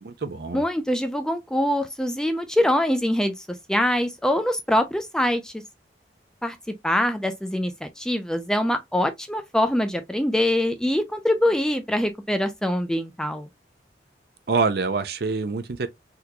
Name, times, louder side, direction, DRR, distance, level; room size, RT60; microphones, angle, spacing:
voice 1, 0.0-0.6 14.5-15.9, right 4 dB, 60° right, 0.5 m, -26 dB
voice 2, 0.5-5.5 6.4-6.6 6.8-13.5, left 1 dB, 5° left, 0.3 m, -24 dB
3.7 x 2.9 x 2.2 m
head